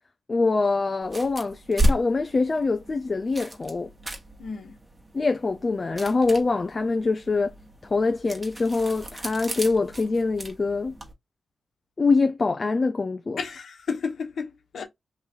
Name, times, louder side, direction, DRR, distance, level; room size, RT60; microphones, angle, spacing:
voice 1, 0.3-3.9 5.1-7.5 7.9-10.9 12.0-13.4, left 3 dB, 45° left, 0.6 m, -24 dB
sound 1, 1.0-11.1, equal, 25° right, 1.4 m, -33 dB
voice 2, 4.4-4.8 13.4-14.8, left 5 dB, 75° left, 1.3 m, -32 dB
3.2 x 2.7 x 3.6 m
cardioid pair, 60°, 0 cm